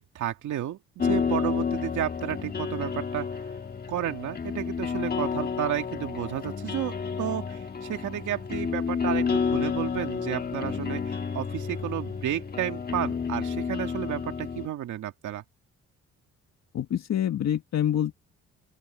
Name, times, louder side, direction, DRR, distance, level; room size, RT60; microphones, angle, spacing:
voice 1, 0.0-3.4 3.9-15.4, right 11 dB, 75° right, 2.2 m, -32 dB
sound 1, 1.0-14.7, left 6 dB, 30° left, 1.8 m, -30 dB
voice 2, 16.7-18.1, left 10 dB, 60° left, 1.8 m, -26 dB
open air
cardioid pair, 90°, 30 cm